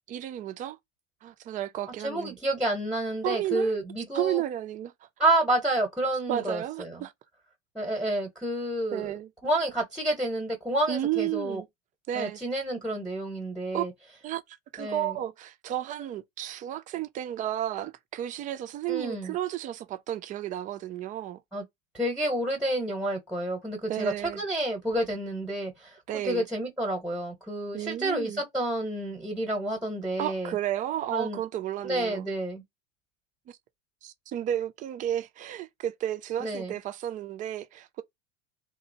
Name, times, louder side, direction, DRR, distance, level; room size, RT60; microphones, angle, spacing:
voice 1, 0.1-0.8 1.2-2.4 3.2-3.7 4.1-4.9 6.3-7.1 8.9-9.3 10.9-11.7 12.1-12.4 13.7-13.8 14.2-14.4 14.7-21.4 23.9-24.4 26.1-26.5 27.7-28.4 30.2-32.3 33.5-33.6 34.0-38.0, right 12 dB, 20° right, 0.3 m, -32 dB
voice 2, 2.0-4.4 5.2-7.1 7.7-9.1 9.4-11.6 12.1-13.9 14.8-15.2 18.9-19.3 21.5-21.6 21.9-25.9 26.2-30.6 31.1-31.4 31.8-32.6 36.4-36.8, right 1 dB, ahead, 0.9 m, -29 dB
2.7 x 2.1 x 2.6 m
hypercardioid pair, 80°, 39 cm